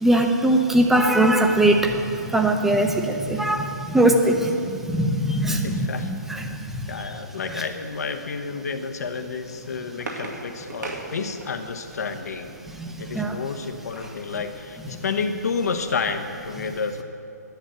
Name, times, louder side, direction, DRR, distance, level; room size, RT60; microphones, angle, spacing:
voice 1, 0.0-2.0 2.3-6.8 7.5-7.6 12.8-13.4, right 1 dB, 5° right, 3 dB, 0.9 m, -21 dB
voice 2, 5.6-6.1 6.8-12.5 13.0-17.0, left 5 dB, 65° left, 6 dB, 1.1 m, -30 dB
sound 1, 9.4-11.8 13.4-14.3 14.8-14.9 15.1-15.4, right 2 dB, 80° right, 2.1 m, -38 dB
10.5 x 8.7 x 9.2 m, 2.6 s
figure-of-eight pair, 135°, 9 cm